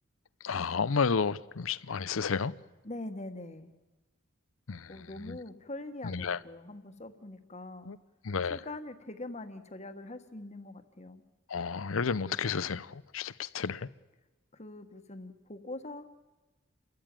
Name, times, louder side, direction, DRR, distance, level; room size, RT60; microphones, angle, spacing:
voice 1, 0.4-2.5 4.7-5.0 5.2-5.4 6.0-6.4 7.8-8.0 8.2-8.6 11.5-13.9, left 5 dB, 85° left, 0.6 m, -31 dB
voice 2, 2.8-3.7 4.9-7.9 8.5-11.2 14.5-16.0, left 2 dB, 35° left, 1.4 m, -43 dB
28.5 x 14.0 x 9.1 m
head